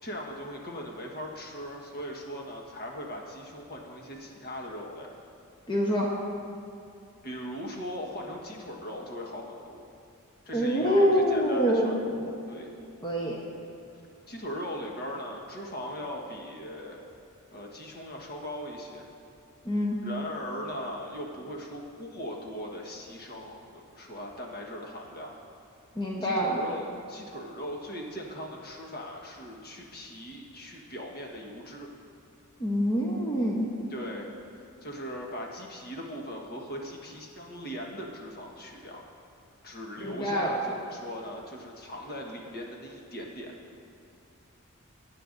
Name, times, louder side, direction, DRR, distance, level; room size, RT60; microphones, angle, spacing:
voice 1, 0.0-5.1 7.2-9.8 10.4-11.9 12.5-12.7 14.3-17.0 17.5-19.1 20.0-25.3 26.2-31.9 33.9-34.2 34.5-39.0 39.6-43.5, equal, 45° left, -1 dB, 1.4 m, -39 dB
voice 2, 5.7-6.1 10.5-12.2 13.0-13.4 19.6-20.0 25.9-26.6 32.6-33.7 40.0-40.6, equal, 20° left, -3 dB, 1.0 m, -26 dB
19.5 x 8.9 x 2.6 m, 2.6 s
head